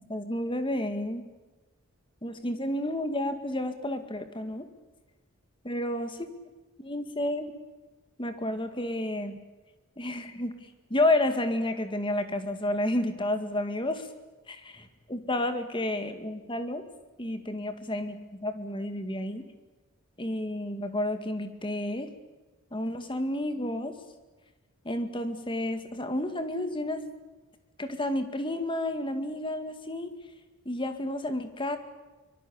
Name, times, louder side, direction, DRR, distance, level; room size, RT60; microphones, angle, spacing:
voice 1, 0.1-1.2 2.2-4.7 5.6-6.3 6.8-7.5 8.2-9.4 10.0-10.5 10.9-14.1 14.5-16.9 17.2-19.5 20.2-22.1 22.7-24.0 24.8-27.0 27.8-30.1 30.7-31.8, left 1 dB, 20° left, 8 dB, 2.1 m, -31 dB
24.0 x 23.0 x 8.9 m, 1.2 s
head